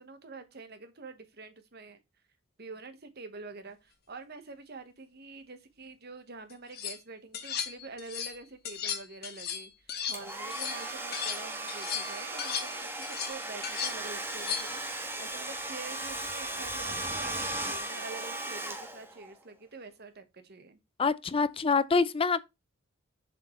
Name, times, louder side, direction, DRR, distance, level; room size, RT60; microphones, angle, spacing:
voice 1, 0.0-2.0 2.6-9.7 10.1-20.8, right 3 dB, 50° right, 1.2 m, -46 dB
sound 1, 6.5-7.0 7.3-8.4 8.6-11.4 11.7-14.8, left 8 dB, 50° left, 1.2 m, -36 dB
Domestic sounds home sounds, 10.1-19.3, right 2 dB, 10° right, 1.3 m, -37 dB
voice 2, 21.0-22.4, left 4 dB, 25° left, 0.4 m, -26 dB
7.5 x 5.1 x 3.1 m
head